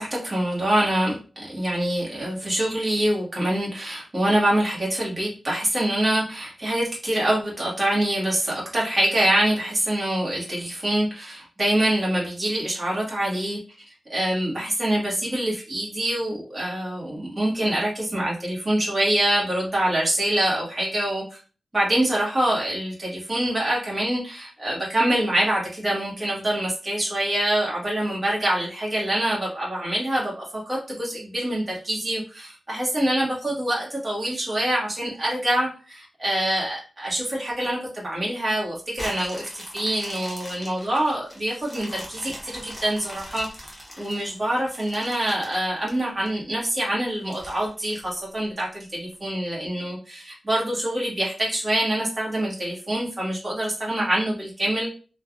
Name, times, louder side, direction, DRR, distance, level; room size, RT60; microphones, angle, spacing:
voice 1, 0.0-13.6 14.1-21.4 21.7-54.9, right 1 dB, 30° right, -4 dB, 1.1 m, -25 dB
sound 1, 38.9-46.3 46.7-46.8 47.3-48.6 49.1-49.2, equal, 10° left, 1.0 m, -41 dB
3.2 x 2.3 x 2.4 m, 0.36 s
wide cardioid pair, 105°, 0 cm